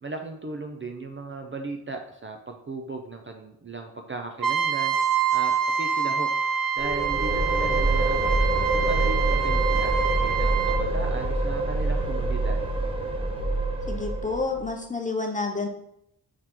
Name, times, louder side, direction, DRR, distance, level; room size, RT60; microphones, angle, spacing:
voice 1, 0.0-6.3 6.8-12.7, right 3 dB, 30° right, 4 dB, 0.5 m, -37 dB
Trumpet, 4.4-10.8, right 7 dB, 55° right, 0.8 m, -26 dB
sound 1, 6.8-14.6, right 2 dB, 15° right, 1.0 m, -26 dB
voice 2, 13.9-15.7, left 3 dB, 20° left, 2 dB, 0.8 m, -29 dB
6.5 x 4.3 x 3.7 m, 0.77 s
wide cardioid pair, 160°, 38 cm